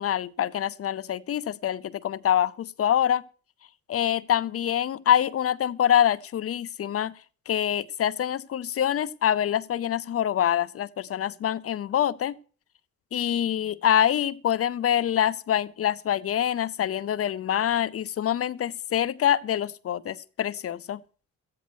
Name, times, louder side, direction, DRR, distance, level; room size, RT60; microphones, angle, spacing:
voice 1, 0.0-3.2 3.9-7.1 7.5-12.3 13.1-21.0, left 10 dB, 50° left, 0.6 m, -25 dB
14.0 x 9.4 x 6.2 m
cardioid pair, 90°, 30 cm